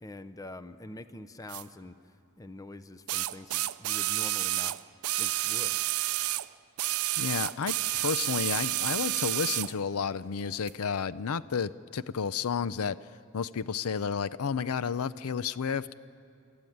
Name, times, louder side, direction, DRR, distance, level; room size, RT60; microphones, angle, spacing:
voice 1, 0.0-2.0 2.4-4.8 5.2-5.8, left 2 dB, 15° left, 10 dB, 0.6 m, -45 dB
sound 1, 1.5-1.6 3.1-6.5 6.8-9.7 10.7-10.8, right 16 dB, 85° right, 0.5 m, -30 dB
voice 2, 7.2-13.0 13.3-15.9, left 6 dB, 90° left, 16 dB, 0.5 m, -31 dB
29.5 x 13.5 x 9.3 m, 2.6 s
head